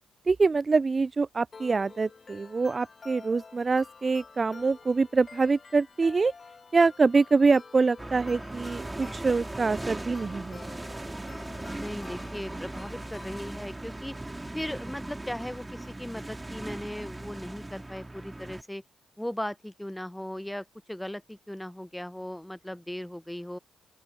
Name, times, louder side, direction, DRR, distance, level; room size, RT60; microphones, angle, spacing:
voice 1, 0.3-6.3 6.7-10.9, right 4 dB, 35° right, 0.3 m, -25 dB
sound 1, 1.5-13.5, left 4 dB, 40° left, 2.0 m, -50 dB
sound 2, 8.0-18.6, right 2 dB, 15° right, 3.8 m, -39 dB
voice 2, 11.7-14.1 14.5-18.8 19.2-23.6, left 1 dB, 5° left, 0.7 m, -37 dB
open air
hypercardioid pair, 45°, 0 cm